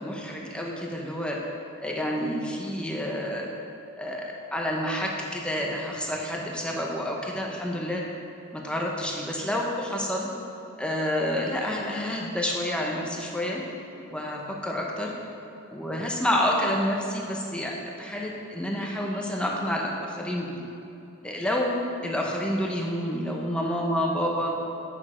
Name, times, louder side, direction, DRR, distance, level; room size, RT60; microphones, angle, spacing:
voice 1, 0.0-1.4 1.8-3.5 4.0-8.0 8.5-10.3 10.8-13.6 14.1-15.1 15.7-20.6 21.2-24.5, equal, 5° left, -2 dB, 0.9 m, -29 dB
8.7 x 6.2 x 4.4 m, 2.8 s
head